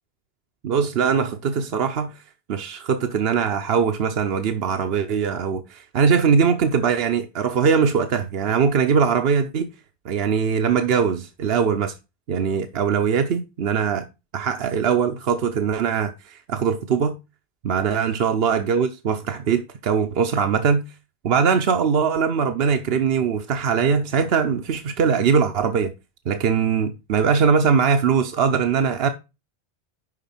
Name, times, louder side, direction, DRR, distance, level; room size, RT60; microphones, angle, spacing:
voice 1, 0.6-2.1 2.5-9.7 10.0-11.9 12.3-14.1 14.3-17.2 17.6-20.8 21.2-25.9 26.3-29.1, right 6 dB, 75° right, 1.0 m, -21 dB
11.0 x 3.9 x 5.8 m
omnidirectional pair, 1.0 m